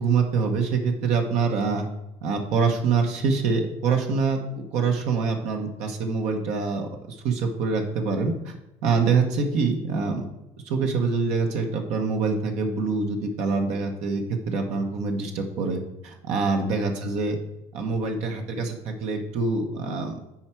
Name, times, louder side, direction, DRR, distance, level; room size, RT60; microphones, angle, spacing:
voice 1, 0.0-1.9 2.2-8.5 8.8-10.2 10.6-17.4 17.7-20.1, right 4 dB, 75° right, 3 dB, 1.1 m, -25 dB
9.6 x 4.5 x 4.5 m, 0.92 s
cardioid pair, 105°, 12 cm